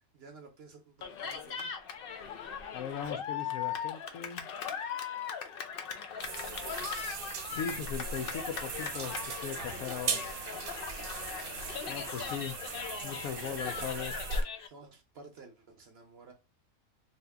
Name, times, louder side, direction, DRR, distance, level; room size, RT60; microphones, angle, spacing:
voice 1, 0.1-1.7 11.9-12.4 13.4-14.1 14.7-16.3, right 4 dB, 60° right, 0.7 m, -53 dB
Cheering, 1.0-14.7, left 7 dB, 60° left, 0.6 m, -39 dB
voice 2, 2.7-4.5 7.5-9.2 9.4-10.3 11.9-12.6 13.0-14.1, left 8 dB, 80° left, 1.0 m, -38 dB
sound 1, 6.2-14.4, right 5 dB, 80° right, 1.1 m, -38 dB
2.8 x 2.8 x 3.3 m
omnidirectional pair, 1.5 m